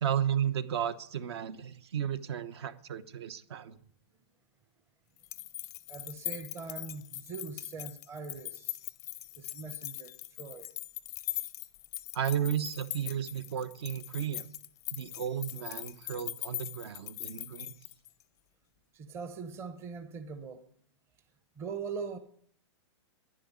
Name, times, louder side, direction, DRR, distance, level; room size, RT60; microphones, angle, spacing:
voice 1, 0.0-3.8 12.1-14.5 14.9-17.7, right 9 dB, 60° right, 1.1 m, -33 dB
sound 1, 5.2-18.2, left 16 dB, 20° left, 0.5 m, -41 dB
voice 2, 5.9-8.8 9.4-10.1 10.4-10.7 18.9-20.7 21.6-22.2, right 5 dB, 15° right, 0.9 m, -41 dB
11.5 x 10.5 x 9.5 m
hypercardioid pair, 160°, 15 cm